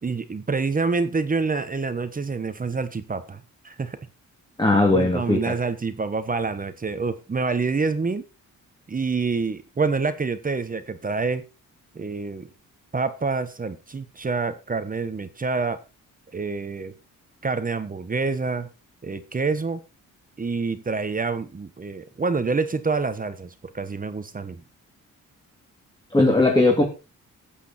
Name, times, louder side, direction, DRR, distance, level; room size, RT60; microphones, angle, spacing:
voice 1, 0.0-4.0 4.9-8.2 8.9-11.4 11.9-12.5 12.9-15.8 16.3-16.9 17.4-18.7 19.0-19.8 20.4-24.6, right 4 dB, 25° right, 1.2 m, -27 dB
voice 2, 4.6-5.5 26.1-26.8, left 2 dB, 15° left, 2.8 m, -18 dB
13.5 x 8.7 x 4.3 m
cardioid pair, 125°, 32 cm